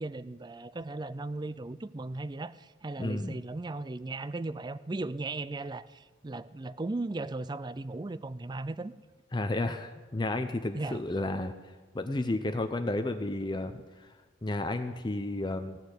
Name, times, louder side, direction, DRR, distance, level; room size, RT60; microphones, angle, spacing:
voice 1, 0.0-8.9 10.7-11.0, right 2 dB, 20° right, 15 dB, 0.4 m, -37 dB
voice 2, 3.0-3.4 9.3-11.5 11.9-14.1 14.4-15.8, left 2 dB, 25° left, 8 dB, 0.6 m, -32 dB
16.5 x 6.7 x 9.6 m, 1.3 s
head